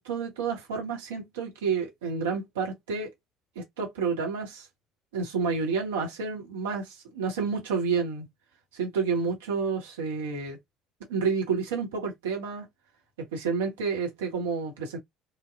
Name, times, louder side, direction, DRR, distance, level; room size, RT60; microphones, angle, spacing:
voice 1, 0.0-3.1 3.5-4.7 5.1-8.3 8.7-10.6 11.1-12.7 13.3-15.0, right 5 dB, 75° right, 1.0 m, -30 dB
3.2 x 2.2 x 2.4 m
figure-of-eight pair, 55°, 0 cm